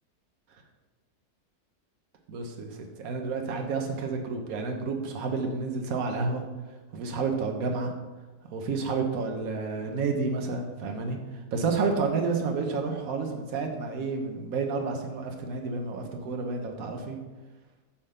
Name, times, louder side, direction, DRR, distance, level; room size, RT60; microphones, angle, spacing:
voice 1, 2.3-6.4 6.9-7.9 8.5-17.2, right 4 dB, 65° right, 3 dB, 1.4 m, -30 dB
8.6 x 3.7 x 6.5 m, 1.2 s
omnidirectional pair, 1.6 m